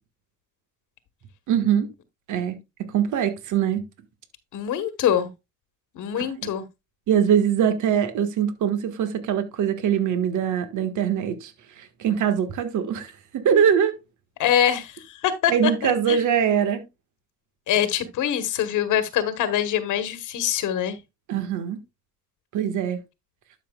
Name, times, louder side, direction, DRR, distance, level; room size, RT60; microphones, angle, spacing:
voice 1, 1.5-1.9 2.3-3.9 6.2-6.3 7.1-13.9 15.5-16.8 21.3-21.8 22.5-23.0, right 8 dB, 80° right, 1.6 m, -23 dB
voice 2, 4.5-5.3 5.9-6.6 14.4-16.5 17.7-21.0, left 10 dB, 85° left, 1.3 m, -24 dB
12.0 x 6.0 x 2.3 m
cardioid pair, 90°, 30 cm